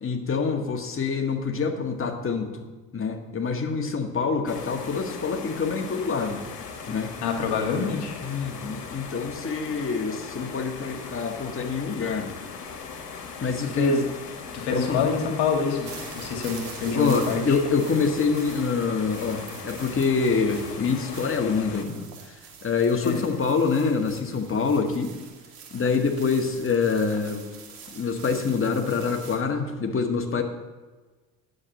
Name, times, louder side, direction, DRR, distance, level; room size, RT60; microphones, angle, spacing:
voice 1, 0.0-2.5 2.9-6.4 6.9-7.1 8.2-12.4 13.4-13.9 14.7-15.1 16.9-25.1 25.7-27.4 27.9-30.4, left 5 dB, 25° left, 4 dB, 1.7 m, -26 dB
sound 1, 4.5-21.8, left 5 dB, 85° left, 1.3 m, -39 dB
voice 2, 7.2-8.1 13.6-14.0 14.5-15.9 16.1-17.4 23.0-23.2, left 5 dB, 55° left, 3 dB, 2.2 m, -26 dB
sound 2, 15.8-29.4, right 6 dB, 70° right, 2.4 m, -45 dB
9.6 x 7.8 x 7.1 m, 1.3 s
hypercardioid pair, 65°, 47 cm